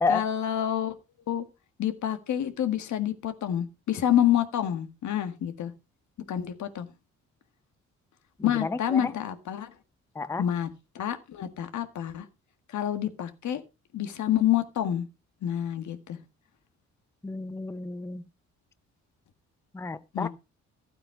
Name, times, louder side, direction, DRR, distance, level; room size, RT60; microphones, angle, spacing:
voice 1, 0.1-0.9 1.3-1.4 1.8-5.7 6.3-6.9 8.4-9.7 10.4-10.7 11.0-12.2 12.7-13.6 13.9-15.0 15.4-16.2 20.1-20.3, left 11 dB, 70° left, 1.7 m, -28 dB
voice 2, 17.2-18.2 19.7-20.3, left 3 dB, 10° left, 0.6 m, -30 dB
12.5 x 8.8 x 4.5 m
cardioid pair, 90°, 30 cm